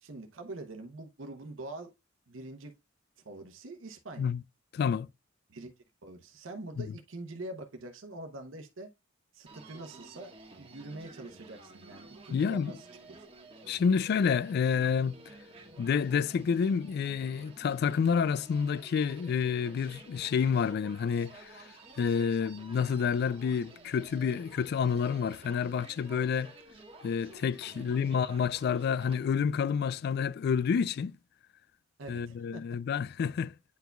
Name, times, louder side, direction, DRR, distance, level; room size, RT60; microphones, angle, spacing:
voice 1, 0.0-1.9 2.3-2.7 3.2-4.3 5.5-5.7 6.0-8.9 9.3-10.3 10.6-12.9 27.7-27.9 32.0-32.6, right 2 dB, 85° right, 0.8 m, -44 dB
voice 2, 4.7-5.1 6.8-6.9 12.3-12.7 13.7-15.2 15.8-21.6 22.0-26.5 27.0-31.2 32.1-33.5, left 6 dB, 55° left, 0.3 m, -29 dB
Human voice, 9.5-29.3, right 2 dB, 30° right, 1.3 m, -52 dB
9.3 x 4.6 x 2.3 m
head